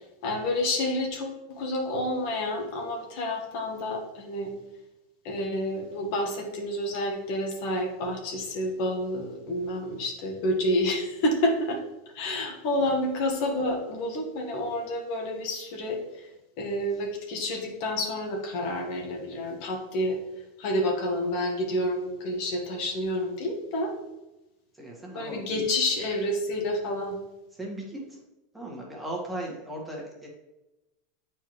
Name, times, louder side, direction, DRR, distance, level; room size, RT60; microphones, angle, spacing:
voice 1, 0.2-4.5 5.2-11.8 12.1-16.3 16.6-20.2 20.6-23.9 25.1-27.2, left 1 dB, 60° left, 1 dB, 1.5 m, -29 dB
voice 2, 24.8-25.6 27.6-28.0 28.5-30.3, right 1 dB, 5° right, -3 dB, 1.8 m, -37 dB
8.0 x 4.6 x 3.2 m, 0.98 s
supercardioid pair, 130°, 0 cm